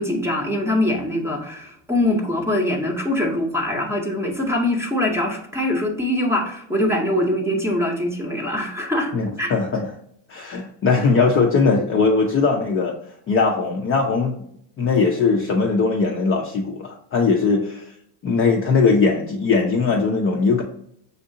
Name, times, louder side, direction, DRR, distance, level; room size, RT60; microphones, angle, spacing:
voice 1, 0.0-9.1 9.4-9.5, left 1 dB, 5° right, 1 dB, 0.7 m, -23 dB
voice 2, 9.1-9.9 10.3-13.0 13.3-14.3 14.8-17.8 18.2-20.6, left 4 dB, 30° left, 0 dB, 0.4 m, -20 dB
6.4 x 2.7 x 2.6 m, 0.70 s
cardioid pair, 135°, 46 cm